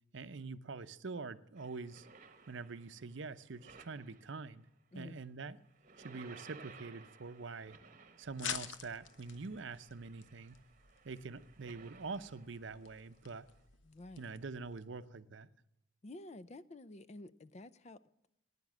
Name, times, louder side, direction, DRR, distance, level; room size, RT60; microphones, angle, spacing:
voice 1, 0.1-2.1 2.5-4.7 4.9-5.6 6.0-7.8 8.2-10.6 11.0-13.5 14.2-15.5, right 4 dB, 60° right, 0.6 m, -45 dB
sound 1, 1.6-4.7 5.6-13.7, right 4 dB, 35° right, 1.0 m, -59 dB
sound 2, 8.2-14.9, left 8 dB, 65° left, 0.9 m, -49 dB
voice 2, 13.8-14.2 16.0-18.3, left 2 dB, 30° left, 0.4 m, -51 dB
16.0 x 10.0 x 7.4 m
head